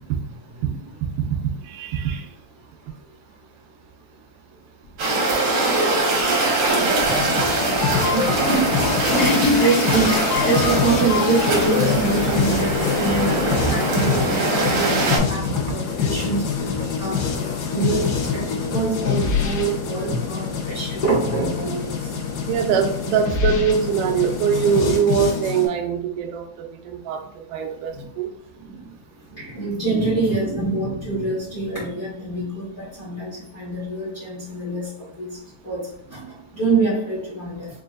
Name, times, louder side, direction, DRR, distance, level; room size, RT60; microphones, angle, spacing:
voice 1, 1.4-2.3 8.4-8.5 13.6-14.1 15.7-15.8 16.8-17.0 22.5-28.3, right 7 dB, 90° right, 4 dB, 2.2 m, -23 dB
sound 1, 5.0-15.2, right 2 dB, 65° right, 1.3 m, -22 dB
sound 2, 7.0-25.7, left 6 dB, 85° left, 2.6 m, -25 dB
Water / Toilet flush, 8.0-13.0 13.3-13.4 14.2-14.3 15.6-15.7, left 2 dB, 70° left, 1.6 m, -26 dB
voice 2, 8.1-8.7 9.6-16.5 16.7-17.2 17.7-21.9 28.0-28.1 29.4-34.9 35.2-35.4 35.6-35.8 36.1-36.2 36.5-37.7, right 3 dB, 45° left, -8 dB, 1.1 m, -25 dB
5.6 x 2.5 x 2.4 m, 0.73 s
omnidirectional pair, 3.6 m